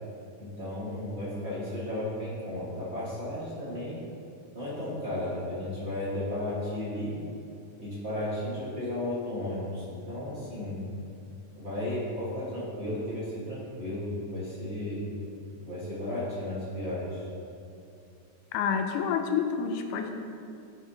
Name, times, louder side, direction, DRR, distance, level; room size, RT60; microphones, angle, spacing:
voice 1, 0.4-4.0 4.5-7.2 7.8-10.8 11.5-15.1 15.5-17.2, left 1 dB, 30° right, -9 dB, 1.2 m, -34 dB
voice 2, 18.5-20.1, left 7 dB, 85° left, 4 dB, 2.1 m, -28 dB
12.0 x 4.1 x 2.8 m, 2.5 s
omnidirectional pair, 3.6 m